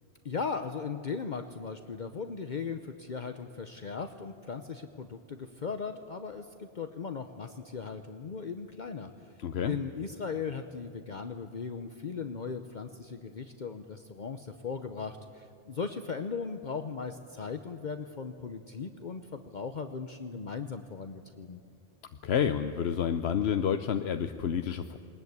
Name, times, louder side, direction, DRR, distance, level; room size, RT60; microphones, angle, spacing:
voice 1, 0.2-9.1 9.7-21.6, left 5 dB, 50° left, 7 dB, 1.0 m, -38 dB
voice 2, 9.4-9.8 22.2-25.0, left 8 dB, 75° left, 8 dB, 1.0 m, -29 dB
20.5 x 20.0 x 9.5 m, 2.6 s
omnidirectional pair, 1.1 m